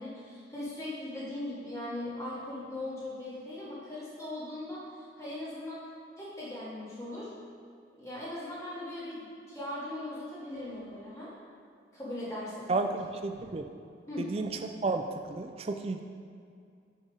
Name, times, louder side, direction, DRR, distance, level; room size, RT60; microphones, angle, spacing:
voice 1, 0.0-4.8 5.2-5.8 6.2-7.3 8.0-11.3 11.9-12.8 14.1-14.3, left 1 dB, 15° left, -9 dB, 1.9 m, -39 dB
voice 2, 12.7-13.7 14.2-16.0, right 3 dB, 30° right, 5 dB, 0.3 m, -32 dB
6.9 x 5.7 x 4.9 m, 2.3 s
head